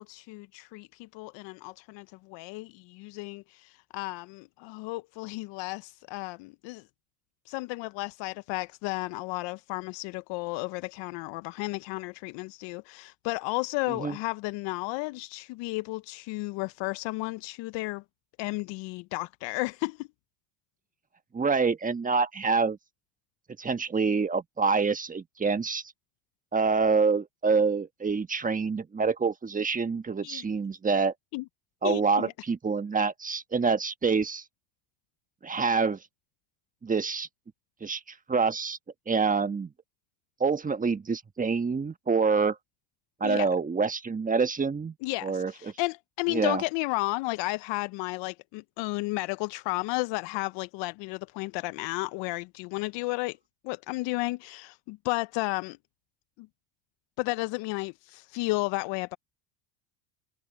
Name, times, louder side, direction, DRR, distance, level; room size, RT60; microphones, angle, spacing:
voice 1, 0.0-6.8 7.5-18.0 18.4-20.1 30.2-30.4 31.3-31.4 31.8-32.3 43.2-43.5 45.0-53.4 53.6-55.8 56.4-56.5 57.2-59.2, left 23 dB, 60° left, 0.7 m, -33 dB
voice 2, 21.3-22.8 23.6-25.8 26.5-31.1 31.8-34.4 35.4-36.0 36.8-37.3 37.8-38.8 39.1-39.7 40.4-42.6 43.2-44.9 45.2-45.7 46.3-46.6, right 5 dB, 15° right, 1.3 m, -26 dB
supercardioid pair, 105°, 49 cm